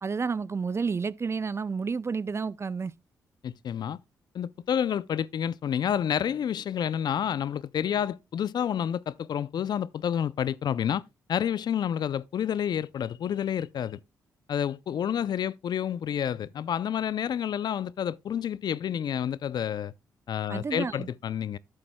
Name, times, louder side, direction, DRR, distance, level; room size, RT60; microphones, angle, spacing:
voice 1, 0.0-2.9 20.5-21.1, right 5 dB, 35° right, 0.4 m, -30 dB
voice 2, 3.4-4.0 4.3-11.0 11.3-14.0 14.5-19.9 20.3-21.6, left 9 dB, 65° left, 0.4 m, -29 dB
12.0 x 7.7 x 2.2 m
supercardioid pair, 55°, 8 cm